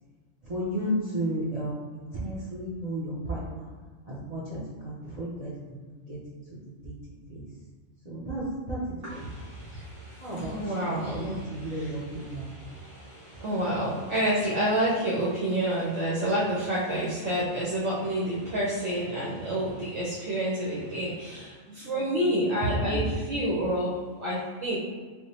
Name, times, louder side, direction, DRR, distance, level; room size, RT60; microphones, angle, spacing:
voice 1, 0.4-3.7 4.1-5.6 6.1-6.6 6.8-7.4 8.0-8.8 9.1-9.2 10.2-12.4, right 1 dB, 35° right, -8 dB, 0.7 m, -33 dB
voice 2, 9.0-24.8, right 1 dB, 65° right, -8 dB, 1.1 m, -29 dB
3.4 x 2.1 x 4.1 m, 1.4 s
omnidirectional pair, 1.3 m